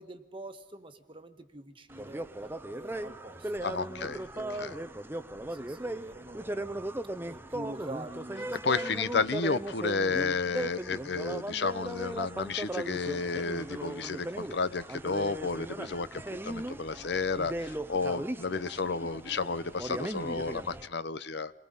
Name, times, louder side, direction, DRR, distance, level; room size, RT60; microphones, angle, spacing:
voice 1, 0.0-2.3 2.7-4.7 5.5-6.9 7.2-8.6 8.8-9.0, right 1 dB, 25° right, 7 dB, 1.4 m, -46 dB
sound 1, 1.9-20.9, right 1 dB, 10° right, 0.7 m, -37 dB
voice 2, 3.6-4.2 4.6-4.7 8.6-21.5, left 4 dB, 60° left, 14 dB, 0.8 m, -32 dB
28.5 x 22.5 x 5.5 m, 0.85 s
head